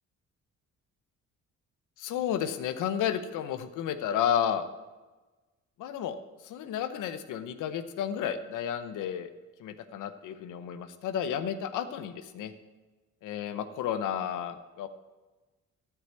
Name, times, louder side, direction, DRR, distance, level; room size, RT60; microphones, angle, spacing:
voice 1, 2.0-4.6 5.8-6.2 6.4-9.3 9.6-12.5 13.2-14.9, left 9 dB, 85° left, 10 dB, 0.8 m, -32 dB
12.5 x 4.8 x 8.1 m, 1.2 s
cardioid pair, 90°, 30 cm